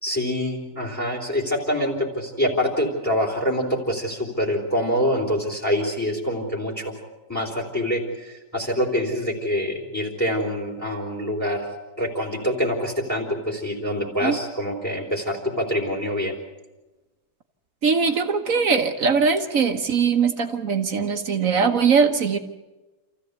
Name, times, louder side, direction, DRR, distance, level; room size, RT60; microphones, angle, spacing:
voice 1, 0.0-6.9 7.3-11.6 12.0-16.3, equal, 10° left, -1 dB, 3.5 m, -25 dB
voice 2, 17.8-22.4, right 5 dB, 60° right, 6 dB, 1.5 m, -21 dB
28.0 x 15.0 x 8.1 m, 1.1 s
omnidirectional pair, 1.7 m